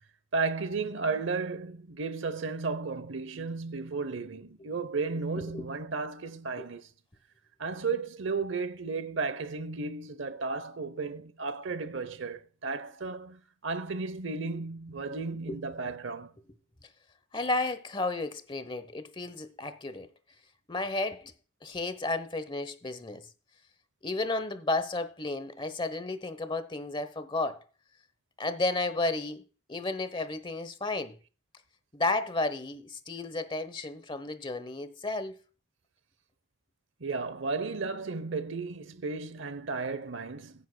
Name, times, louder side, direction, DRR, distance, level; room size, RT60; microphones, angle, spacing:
voice 1, 0.3-6.9 7.6-16.3 37.0-40.7, right 4 dB, 70° right, 0.8 m, -34 dB
voice 2, 17.3-20.1 20.7-21.3 21.6-23.2 24.0-27.6 28.4-29.4 29.7-31.1 31.9-35.4, left 2 dB, 25° left, 1.0 m, -32 dB
16.0 x 9.5 x 2.3 m
head